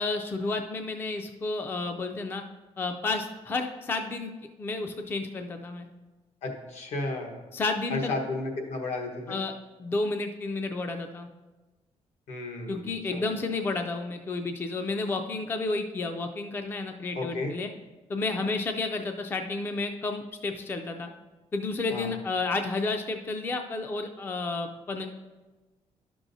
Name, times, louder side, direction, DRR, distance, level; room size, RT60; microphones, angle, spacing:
voice 1, 0.0-2.4 2.8-4.3 4.6-5.9 7.5-8.1 9.3-9.5 9.8-11.3 12.7-17.7 18.1-21.1 21.5-25.1, left 3 dB, 20° left, 6 dB, 0.3 m, -31 dB
voice 2, 6.4-7.4 7.9-9.4 12.3-13.5 17.1-17.5 21.9-22.1, left 2 dB, 75° left, 2 dB, 1.2 m, -33 dB
11.5 x 6.0 x 2.6 m, 1.2 s
cardioid pair, 180°, 11 cm